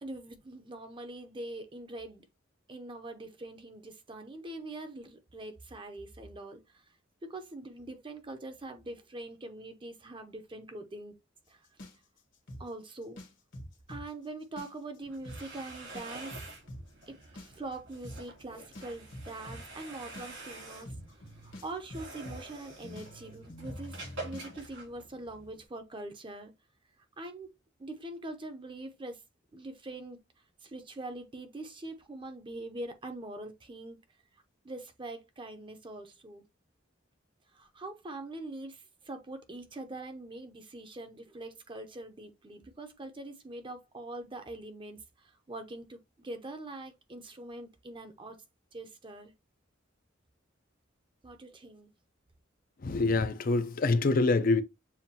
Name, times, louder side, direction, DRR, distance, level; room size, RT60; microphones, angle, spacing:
voice 1, 0.0-2.2 2.7-6.6 7.2-11.2 11.5-11.6 12.6-13.2 13.9-16.4 17.1-20.9 21.4-26.5 27.2-27.5 27.8-29.2 29.5-30.2 30.6-34.0 34.6-36.4 37.5-48.4 48.7-49.3 51.2-51.9, right 2 dB, 25° right, 0.7 m, -43 dB
sound 1, 11.8-14.0 14.4-15.0 15.2-15.4 15.9-24.6, equal, 65° left, 1.5 m, -45 dB
sound 2, 15.0-25.6, right 2 dB, 75° right, 3.2 m, -48 dB
voice 2, 52.8-54.6, left 3 dB, 45° left, 0.5 m, -25 dB
7.0 x 2.5 x 2.8 m
head